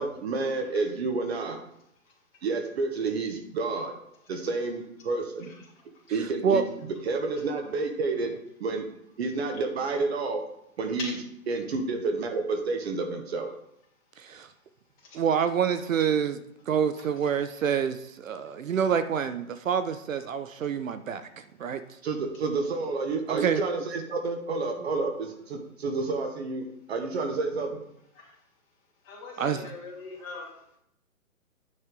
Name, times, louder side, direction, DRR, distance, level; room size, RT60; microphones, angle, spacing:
voice 1, 0.0-1.6 2.4-3.9 4.3-5.5 6.1-6.6 7.0-8.3 8.6-8.8 9.2-10.4 10.8-11.1 11.5-13.5 22.0-27.8, right 3 dB, 45° right, 4 dB, 1.0 m, -29 dB
voice 2, 14.2-14.5 15.1-21.3 21.6-21.8 23.3-23.6 29.4-29.6, right 7 dB, 65° right, 11 dB, 0.7 m, -27 dB
voice 3, 29.0-30.8, left 3 dB, 25° left, -4 dB, 2.9 m, -43 dB
9.6 x 4.4 x 3.7 m, 0.75 s
hypercardioid pair, 140°, 43 cm